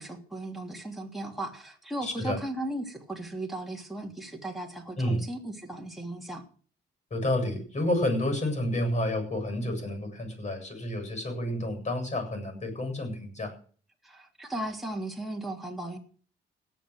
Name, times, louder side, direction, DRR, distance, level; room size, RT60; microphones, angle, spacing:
voice 1, 0.0-6.4 14.0-16.0, right 1 dB, ahead, 0 dB, 3.1 m, -36 dB
voice 2, 2.0-2.4 5.0-5.2 7.1-13.5, left 1 dB, 35° left, 6 dB, 7.8 m, -30 dB
18.0 x 7.5 x 6.5 m, 0.43 s
cardioid pair, 90°, 20 cm